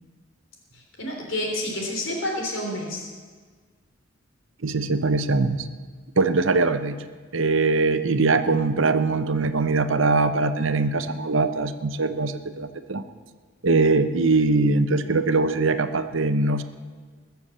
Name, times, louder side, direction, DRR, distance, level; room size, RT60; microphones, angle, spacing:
voice 1, 0.7-3.0, left 1 dB, 70° left, 0 dB, 3.6 m, -29 dB
voice 2, 4.6-5.7 6.2-13.0 13.6-16.6, right 3 dB, 70° right, 10 dB, 0.8 m, -22 dB
21.0 x 7.1 x 7.4 m, 1.5 s
head